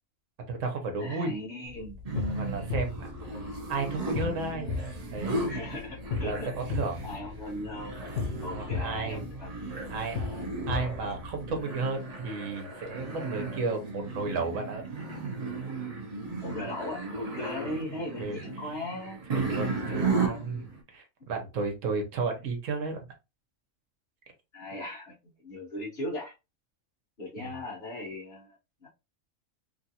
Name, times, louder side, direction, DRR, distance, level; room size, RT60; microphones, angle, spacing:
voice 1, 0.5-1.3 2.3-3.1 3.7-4.8 5.1-5.5 6.2-7.1 8.5-9.2 9.9-10.2 10.7-14.8 18.2-18.4 19.3-23.0 27.4-27.5, right 3 dB, 75° right, 4 dB, 1.2 m, -33 dB
voice 2, 1.0-2.0 5.5-6.5 7.0-8.0 8.4-9.5 9.8-9.9 16.4-19.2 19.9-20.6 24.5-25.1 25.4-26.3 27.2-28.6 28.8-28.9, left 1 dB, 50° left, -9 dB, 1.3 m, -38 dB
sound 1, 1.7-11.6, left 5 dB, 85° left, 1.1 m, -36 dB
sound 2, 2.0-20.8, right 3 dB, 45° right, 0.5 m, -35 dB
3.1 x 2.5 x 2.7 m, 0.26 s
omnidirectional pair, 1.4 m